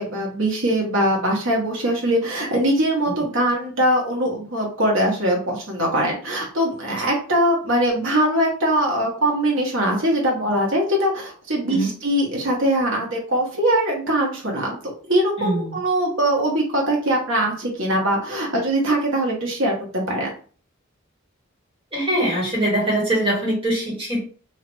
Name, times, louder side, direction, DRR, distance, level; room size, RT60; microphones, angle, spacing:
voice 1, 0.0-20.3, right 1 dB, 65° right, -1 dB, 1.3 m, -22 dB
voice 2, 15.4-15.8 21.9-24.3, right 1 dB, 25° right, -4 dB, 1.7 m, -23 dB
3.2 x 2.8 x 3.1 m, 0.40 s
head